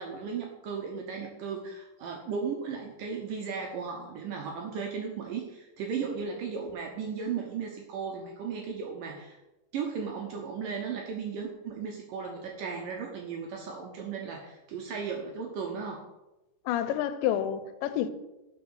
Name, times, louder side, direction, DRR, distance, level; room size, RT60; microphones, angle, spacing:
voice 1, 0.0-9.4 9.7-16.0, right 6 dB, 75° right, 2.1 m, -36 dB
voice 2, 16.7-18.1, left 10 dB, 90° left, 2.9 m, -29 dB
7.3 x 6.3 x 6.2 m
omnidirectional pair, 4.9 m